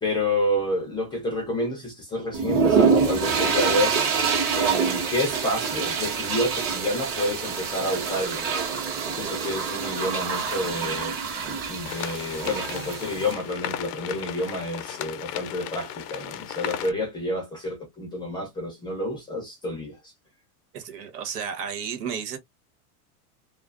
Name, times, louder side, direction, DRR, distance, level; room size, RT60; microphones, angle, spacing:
voice 1, 0.0-3.9 4.5-8.7 9.0-11.2 11.7-20.0, left 1 dB, 10° left, 0.4 m, -29 dB
sound 1, 2.3-13.3, right 5 dB, 30° right, 0.7 m, -26 dB
sound 2, 11.8-16.9, left 11 dB, 80° left, 0.6 m, -35 dB
voice 2, 20.7-22.4, right 7 dB, 80° right, 1.2 m, -32 dB
2.3 x 2.3 x 2.4 m
supercardioid pair, 145°, 47 cm